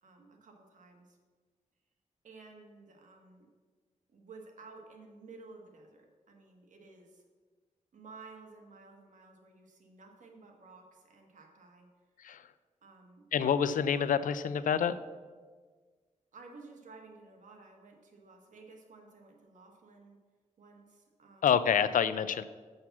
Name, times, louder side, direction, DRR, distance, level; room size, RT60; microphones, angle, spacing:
voice 1, 0.0-1.2 2.2-3.5 4.1-7.2 7.9-11.9 12.8-13.3 16.3-20.2 20.6-21.5, right 3 dB, 75° right, 2 dB, 1.5 m, -54 dB
voice 2, 13.3-15.0 21.4-22.4, left 8 dB, 90° left, 13 dB, 0.4 m, -27 dB
6.5 x 5.9 x 7.1 m, 1.5 s
wide cardioid pair, 165°, 13 cm